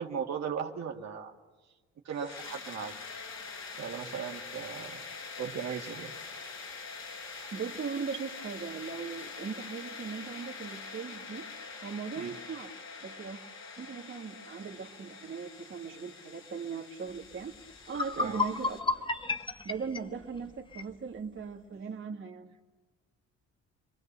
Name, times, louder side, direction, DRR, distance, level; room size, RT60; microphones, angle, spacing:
voice 1, 0.0-1.3 2.0-3.0 3.7-5.0 5.4-6.1 12.2-12.3 18.2-18.4, right 7 dB, 60° right, 2.3 m, -37 dB
sound 1, 2.1-18.8, left 4 dB, 65° left, 5.6 m, -45 dB
voice 2, 7.5-11.5 11.8-12.7 13.0-13.4 13.8-17.5 17.9-19.1 19.6-22.5, right 5 dB, 40° right, 2.3 m, -39 dB
sound 2, 17.4-17.5 17.8-20.9, left 4 dB, 15° left, 1.2 m, -32 dB
29.5 x 22.0 x 6.9 m
cardioid pair, 90°, 30 cm